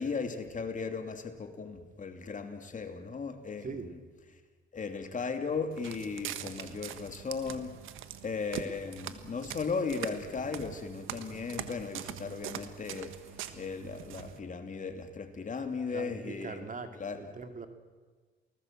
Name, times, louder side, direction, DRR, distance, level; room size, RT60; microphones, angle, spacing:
voice 1, 0.0-4.0 4.7-7.7 8.2-13.1 13.5-16.7 16.9-17.2, left 5 dB, 40° left, 6 dB, 3.0 m, -36 dB
Walk footsteps, 5.7-14.4, right 10 dB, 90° right, 1.5 m, -43 dB
voice 2, 15.9-17.7, right 4 dB, 40° right, 7 dB, 2.5 m, -41 dB
29.5 x 19.0 x 7.7 m, 1.4 s
cardioid pair, 90°, 20 cm